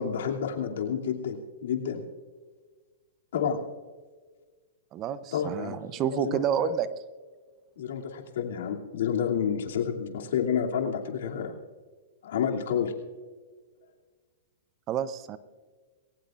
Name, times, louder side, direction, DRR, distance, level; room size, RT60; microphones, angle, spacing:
voice 1, 0.0-2.0 3.3-3.6 5.3-6.7 7.8-11.6 12.2-12.9, left 7 dB, 75° left, 1 dB, 2.7 m, -30 dB
voice 2, 4.9-6.9 14.9-15.4, right 9 dB, 30° right, 15 dB, 0.7 m, -29 dB
21.0 x 18.5 x 2.5 m, 1.4 s
hypercardioid pair, 145°, 0 cm